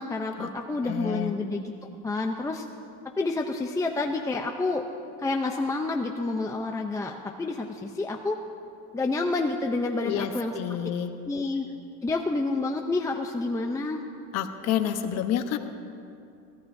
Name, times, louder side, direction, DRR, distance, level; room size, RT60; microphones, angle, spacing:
voice 1, 0.0-1.7 2.0-2.6 3.2-4.8 5.2-8.4 8.9-10.5 11.3-11.7 12.0-14.0, left 3 dB, 10° left, 2 dB, 0.6 m, -29 dB
voice 2, 0.8-1.3 10.0-11.1 14.3-15.6, left 10 dB, 55° left, 7 dB, 1.0 m, -29 dB
23.0 x 17.5 x 2.7 m, 2.5 s
cardioid pair, 125°, 31 cm